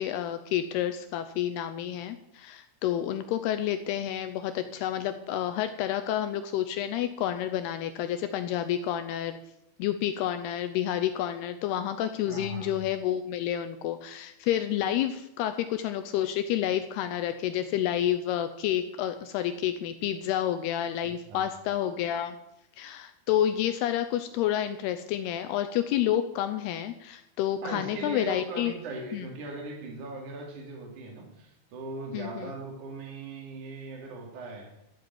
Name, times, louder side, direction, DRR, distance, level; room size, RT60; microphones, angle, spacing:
voice 1, 0.0-9.4 9.8-22.4 22.8-28.7 29.1-29.3 32.1-32.5, left 11 dB, 85° left, 9 dB, 2.3 m, -29 dB
voice 2, 12.3-12.7 21.0-21.4 27.6-34.7, right 2 dB, 45° right, 1 dB, 3.8 m, -39 dB
12.5 x 7.6 x 8.9 m, 0.84 s
omnidirectional pair, 5.3 m